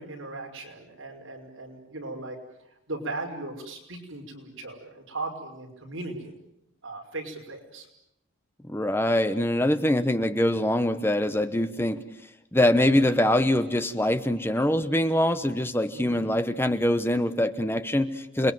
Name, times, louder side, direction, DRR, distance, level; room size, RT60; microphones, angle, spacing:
voice 1, 0.0-2.4 2.9-6.3 6.8-7.9 15.9-16.2, right 2 dB, 65° right, 2 dB, 5.7 m, -37 dB
voice 2, 8.6-12.0 12.5-18.5, left 1 dB, 10° left, 10 dB, 1.0 m, -24 dB
29.0 x 21.5 x 9.3 m, 0.84 s
head